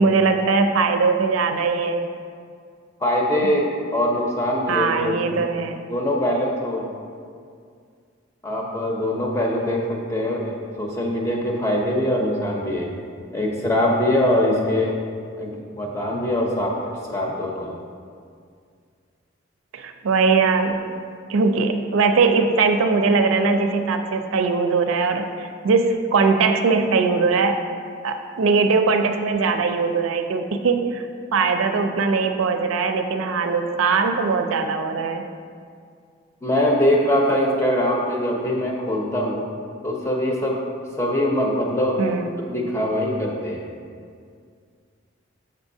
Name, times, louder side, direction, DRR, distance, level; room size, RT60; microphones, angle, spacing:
voice 1, 0.0-2.0 4.7-5.8 19.7-20.8 21.3-27.6 28.0-31.0 31.3-35.2 42.0-42.3, right 4 dB, 85° right, 6 dB, 0.4 m, -20 dB
voice 2, 3.0-3.7 3.9-5.4 5.9-6.8 8.4-12.9 13.3-14.9 15.4-16.7 17.1-17.7 36.4-39.4 39.8-40.6 41.0-41.9 42.5-43.6, left 1 dB, 15° left, -2 dB, 0.6 m, -22 dB
7.1 x 5.4 x 2.7 m, 2.2 s
head